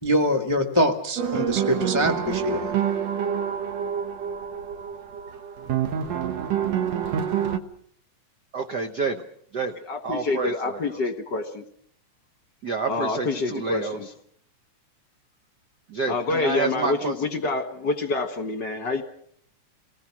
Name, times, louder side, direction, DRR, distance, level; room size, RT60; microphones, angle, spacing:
voice 1, 0.0-2.7, equal, 25° left, 3 dB, 0.6 m, -24 dB
sound 1, 1.2-7.6, right 8 dB, 65° right, 2.2 m, -27 dB
voice 2, 8.5-9.2 9.5-9.8 10.0-10.8 12.6-14.0 15.9-17.1, right 4 dB, 90° right, 6 dB, 0.9 m, -28 dB
voice 3, 9.8-11.6 12.9-14.1 16.1-19.0, left 3 dB, 45° left, 7 dB, 1.6 m, -27 dB
27.5 x 19.0 x 6.2 m, 0.65 s
omnidirectional pair, 3.5 m